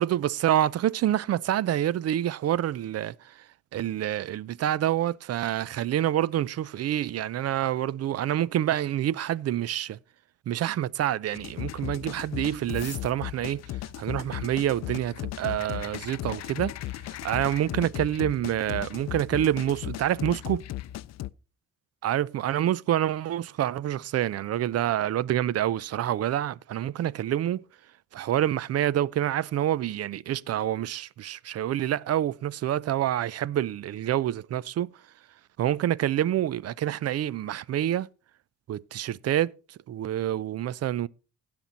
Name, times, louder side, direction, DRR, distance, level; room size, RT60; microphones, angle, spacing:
voice 1, 0.0-3.4 3.7-10.0 10.5-13.6 14.0-16.7 17.2-20.6 22.0-27.6 28.1-34.9 35.6-38.1 38.7-41.1, right 12 dB, 55° right, 0.5 m, -27 dB
sound 1, 11.3-21.3, left 14 dB, 60° left, 0.5 m, -36 dB
16.0 x 6.1 x 4.0 m
cardioid pair, 90°, 30 cm